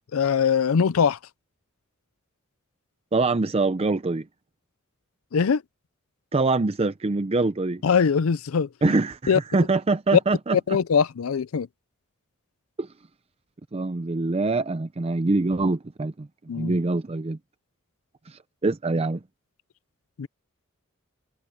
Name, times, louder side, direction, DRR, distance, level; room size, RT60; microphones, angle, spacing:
voice 1, 0.1-1.2 5.3-5.6 7.8-8.7 9.3-9.4 10.1-10.2 10.5-11.7 16.5-16.7 20.2-20.3, left 6 dB, 75° left, 0.5 m, -21 dB
voice 2, 3.1-4.2 6.3-7.8 8.8-10.6 12.8-12.9 13.7-16.3 16.5-17.4 18.3-19.2, right 3 dB, 30° right, 0.5 m, -24 dB
head